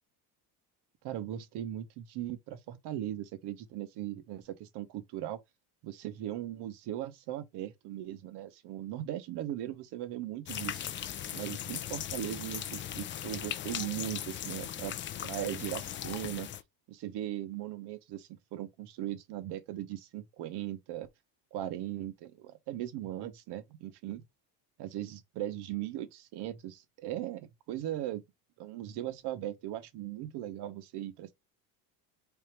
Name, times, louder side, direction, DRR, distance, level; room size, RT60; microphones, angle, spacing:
voice 1, 1.0-5.4 5.8-10.8 11.3-14.9 15.2-16.5 16.9-21.1 21.5-24.2 24.8-28.2 28.6-31.3, right 13 dB, 60° right, 0.9 m, -38 dB
sound 1, 10.5-16.6, left 10 dB, 30° left, 0.3 m, -38 dB
3.4 x 2.6 x 4.5 m
cardioid pair, 120°, 45 cm